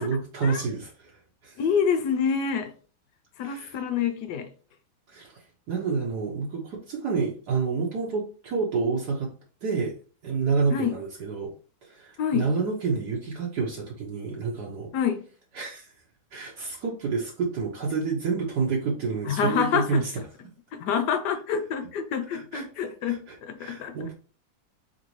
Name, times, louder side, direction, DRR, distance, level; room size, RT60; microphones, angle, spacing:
voice 1, 0.0-1.6 3.4-3.8 5.1-5.4 5.7-9.3 9.6-9.9 10.2-11.5 11.8-14.9 15.5-15.9 16.3-20.1 22.3-22.6 23.1-24.1, right 4 dB, 65° right, 1.4 m, -29 dB
voice 2, 1.6-2.7 3.4-4.5 10.7-10.9 12.2-12.5 14.9-15.2 19.2-20.0 20.7-24.1, left 7 dB, 70° left, 1.2 m, -27 dB
4.2 x 4.0 x 3.1 m
omnidirectional pair, 2.1 m